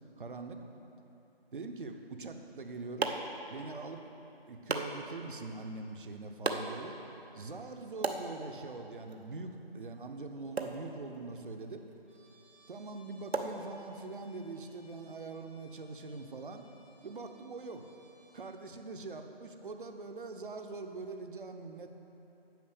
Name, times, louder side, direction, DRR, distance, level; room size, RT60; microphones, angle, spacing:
voice 1, 0.2-0.6 1.5-3.2 3.5-4.0 4.5-7.0 7.3-11.9 12.7-16.6 17.0-17.8 18.3-21.9, right 3 dB, 55° right, 6 dB, 0.8 m, -43 dB
sound 1, 2.3-14.3, right 3 dB, 85° right, 0.9 m, -41 dB
Trumpet, 12.1-18.6, equal, 10° right, 0.6 m, -65 dB
9.3 x 6.0 x 6.7 m, 3.0 s
figure-of-eight pair, 160°, 31 cm